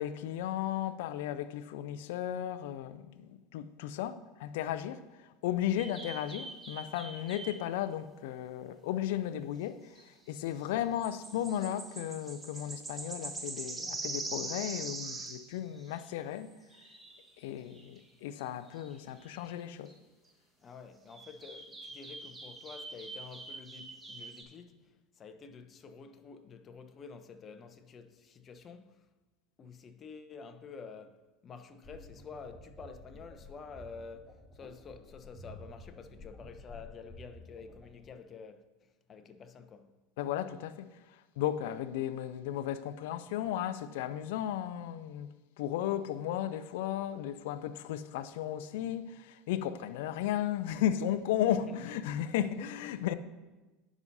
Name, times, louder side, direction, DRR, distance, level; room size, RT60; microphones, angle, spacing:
voice 1, 0.0-16.5 17.4-19.9 40.2-45.3 45.6-53.1, left 11 dB, 70° left, 0.6 m, -35 dB
sound 1, 5.8-7.7 10.0-10.1 10.4-10.5 10.7-16.1 16.7-17.3 17.7-18.0 18.4-18.5 18.7-19.6 19.9-20.0 21.1-24.4, right 3 dB, 20° right, 1.4 m, -43 dB
voice 2, 20.6-29.1 29.6-40.0 51.7-51.8, left 5 dB, 35° left, 0.9 m, -49 dB
sound 2, 31.8-38.1, left 1 dB, 15° left, 1.7 m, -52 dB
17.5 x 6.1 x 2.7 m
hypercardioid pair, 80°, 0 cm